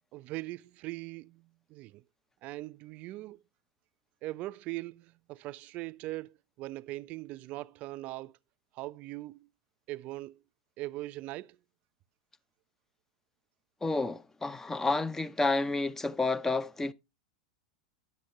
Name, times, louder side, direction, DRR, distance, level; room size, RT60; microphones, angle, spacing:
voice 1, 0.1-2.0 2.4-3.4 4.2-8.4 8.7-9.5 9.9-10.4 10.8-11.6, right 18 dB, 45° right, 0.4 m, -40 dB
voice 2, 13.8-16.9, left 3 dB, 10° left, 0.5 m, -30 dB
10.5 x 7.6 x 2.9 m
hypercardioid pair, 95°, 3 cm